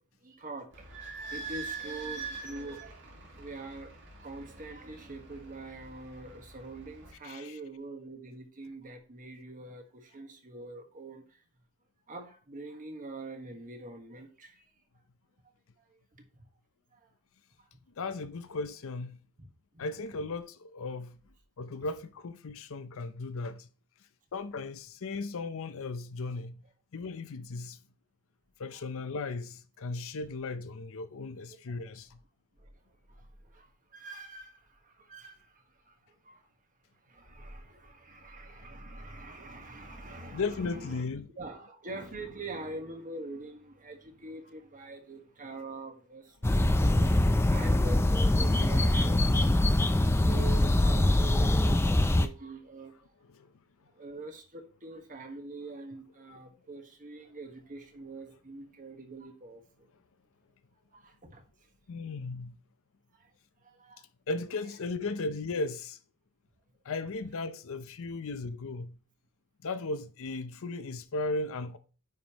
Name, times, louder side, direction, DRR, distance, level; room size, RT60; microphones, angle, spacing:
voice 1, 0.2-0.7 1.1-3.1 3.4-3.9 4.2-11.4 12.1-14.7 15.9-16.4 16.9-17.1 17.6-17.8 19.4-19.5 19.7-19.8 31.5-31.8 32.6-32.7 33.1-33.6 33.9-36.5 37.0-47.1 47.5-49.8 50.3-52.9 53.9-59.9 60.9-61.5 63.1-63.3 63.6-64.0, right 2 dB, 35° right, 1.4 m, -44 dB
Idling / Squeak, 0.7-7.1, right 4 dB, 55° right, 2.1 m, -44 dB
voice 2, 7.2-7.6 18.0-19.2 19.8-21.2 21.6-23.7 24.3-26.6 26.9-27.8 28.6-32.2 40.3-41.3 47.4-47.6 53.2-53.5 61.9-62.6 64.3-66.0 66.8-69.0 69.6-71.8, left 3 dB, 65° left, 0.6 m, -36 dB
sound 1, 46.4-52.3, left 1 dB, 10° left, 0.4 m, -24 dB
9.3 x 5.2 x 3.0 m
head